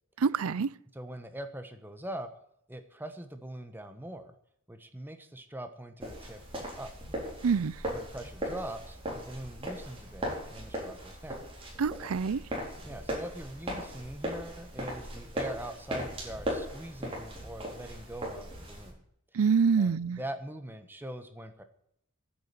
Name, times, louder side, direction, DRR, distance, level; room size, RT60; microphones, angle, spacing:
voice 1, 0.2-0.7 7.4-7.7 11.8-12.4 19.3-20.2, right 5 dB, 85° right, 0.5 m, -26 dB
voice 2, 0.9-2.3 2.7-4.3 4.7-6.9 7.5-7.6 7.9-11.5 12.8-19.0 19.3-19.4 19.8-21.6, right 1 dB, 10° right, 1.2 m, -42 dB
sound 1, 6.0-18.9, equal, 25° right, 4.4 m, -38 dB
10.5 x 8.6 x 9.2 m
head